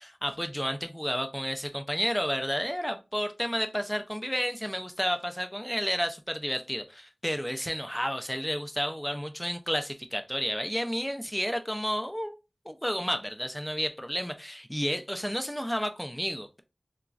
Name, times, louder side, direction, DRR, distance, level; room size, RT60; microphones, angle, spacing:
voice 1, 0.0-12.4 12.7-16.6, equal, 5° left, 0.5 m, -31 dB
3.0 x 2.3 x 2.4 m
wide cardioid pair, 40°, 0 cm